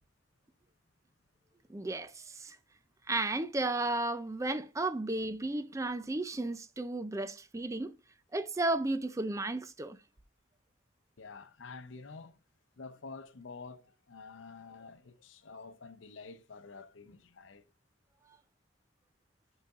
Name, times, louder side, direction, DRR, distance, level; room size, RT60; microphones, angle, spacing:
voice 1, 1.7-2.6 3.1-7.9 8.3-10.0, right 2 dB, 15° right, 0.4 m, -33 dB
voice 2, 11.2-12.4 12.8-17.6, left 4 dB, 90° left, 0.7 m, -49 dB
10.5 x 4.0 x 2.4 m
head